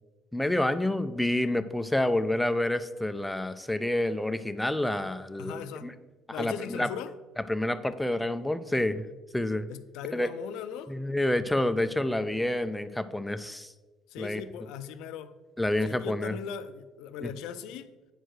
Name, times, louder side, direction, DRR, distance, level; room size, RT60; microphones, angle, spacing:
voice 1, 0.3-5.9 6.4-6.9 7.5-9.0 9.3-9.7 10.1-10.3 10.9-13.7 14.2-14.4 15.6-16.4 17.2-17.3, left 1 dB, 5° left, 0.4 m, -28 dB
voice 2, 5.4-5.9 6.3-7.1 9.7-11.0 14.1-15.3 15.8-17.9, left 8 dB, 85° left, 0.5 m, -39 dB
9.1 x 4.6 x 6.5 m
cardioid pair, 140°, 0 cm